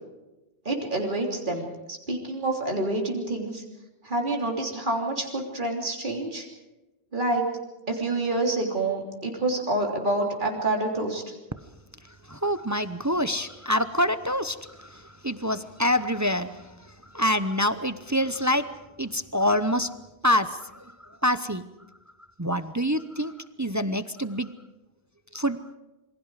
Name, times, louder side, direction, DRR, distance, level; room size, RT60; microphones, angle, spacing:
voice 1, 0.7-3.6 4.0-6.5 7.1-7.4 7.9-11.2, right 2 dB, 45° right, 0 dB, 3.6 m, -27 dB
voice 2, 12.0-18.7 19.0-19.9 20.2-21.6 22.4-24.5 25.3-25.8, equal, 20° right, 11 dB, 0.7 m, -26 dB
27.5 x 24.5 x 4.9 m, 1.0 s
omnidirectional pair, 1.1 m